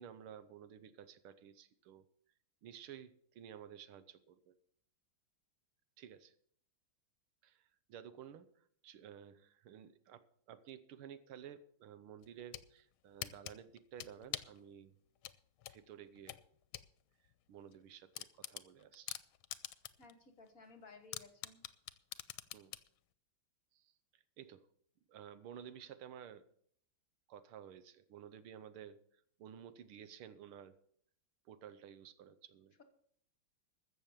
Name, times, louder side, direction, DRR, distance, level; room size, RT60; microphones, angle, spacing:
voice 1, 0.0-2.0 2.6-4.5 6.0-6.3 7.4-8.5 8.8-15.0 15.7-16.4 17.5-19.2 22.5-22.7 23.7-24.7 25.1-26.5 27.3-29.0 29.4-30.7 31.4-32.8, right 9 dB, 80° right, 13 dB, 1.8 m, -53 dB
sound 1, 12.2-12.7 13.2-14.6 15.2-16.9 17.3-17.4 17.7-17.8 18.1-20.1 20.5-20.6 21.1-22.9, left 13 dB, 80° left, 1.5 m, -45 dB
voice 2, 20.0-21.6, left 3 dB, 45° left, 8 dB, 1.6 m, -58 dB
14.5 x 7.0 x 7.3 m, 0.64 s
omnidirectional pair, 2.3 m